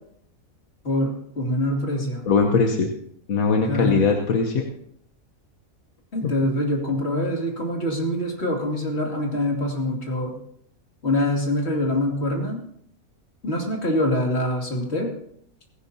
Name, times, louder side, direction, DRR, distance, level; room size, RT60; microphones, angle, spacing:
voice 1, 0.8-2.3 3.7-4.0 6.1-10.3 11.0-12.6 13.4-15.1, left 1 dB, 45° left, 0 dB, 2.9 m, -24 dB
voice 2, 2.3-2.9 3.3-4.6, left 5 dB, 75° left, 3 dB, 1.5 m, -20 dB
18.5 x 16.5 x 2.8 m, 0.67 s
omnidirectional pair, 1.5 m